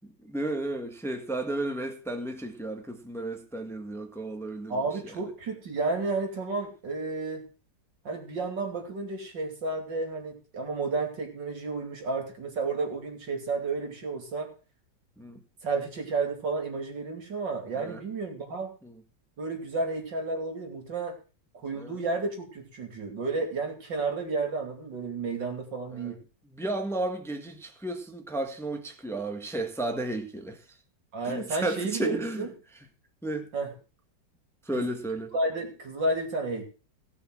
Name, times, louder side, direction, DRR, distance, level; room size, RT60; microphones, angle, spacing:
voice 1, 0.2-4.8 15.2-15.4 17.8-18.0 18.8-18.9 21.7-22.0 25.9-26.1 26.5-30.6 31.2-32.5 33.2-33.5 34.6-35.3, right 2 dB, ahead, 1.4 m, -33 dB
voice 2, 4.7-7.4 8.0-14.5 15.6-18.7 19.4-21.2 21.5-26.2 31.1-32.5 33.5-33.7 34.8-34.9 35.3-36.6, right 3 dB, 80° right, 3.4 m, -32 dB
17.0 x 6.2 x 6.1 m
omnidirectional pair, 1.9 m